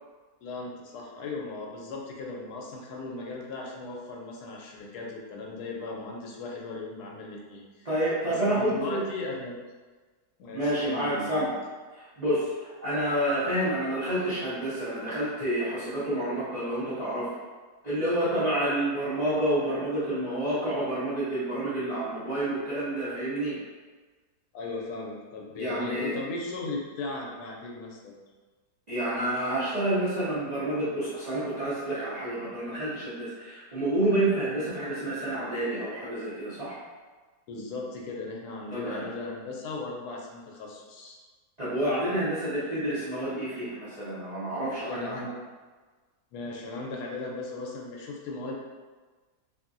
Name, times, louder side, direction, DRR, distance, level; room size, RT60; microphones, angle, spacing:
voice 1, 0.4-7.9 8.3-9.6 10.4-11.4 24.5-28.2 37.5-41.2 44.8-45.3 46.3-48.5, left 3 dB, 80° left, -1 dB, 1.1 m, -37 dB
voice 2, 7.8-9.0 10.5-11.5 11.9-17.3 17.8-23.6 25.6-26.2 28.9-36.8 38.7-39.1 41.6-45.2, right 1 dB, 45° right, -12 dB, 0.5 m, -29 dB
2.8 x 2.7 x 2.5 m, 1.4 s
omnidirectional pair, 1.7 m